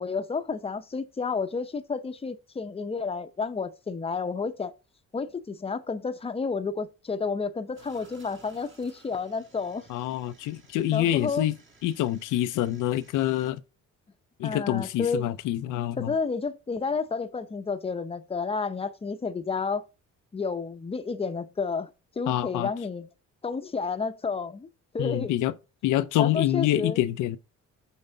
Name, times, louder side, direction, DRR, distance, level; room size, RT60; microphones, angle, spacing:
voice 1, 0.0-4.7 5.1-9.8 10.9-11.5 14.4-15.3 16.0-19.8 20.3-21.9 22.2-23.1 23.4-24.7 24.9-25.3 26.2-27.0, left 4 dB, 20° left, 0.7 m, -31 dB
sound 1, 7.8-13.5, right 3 dB, 40° right, 2.0 m, -57 dB
voice 2, 9.9-11.5 11.8-13.6 14.4-16.1 22.3-22.7 25.0-25.5 25.8-27.4, left 13 dB, 85° left, 0.5 m, -26 dB
5.5 x 5.5 x 3.8 m
cardioid pair, 90°, 30 cm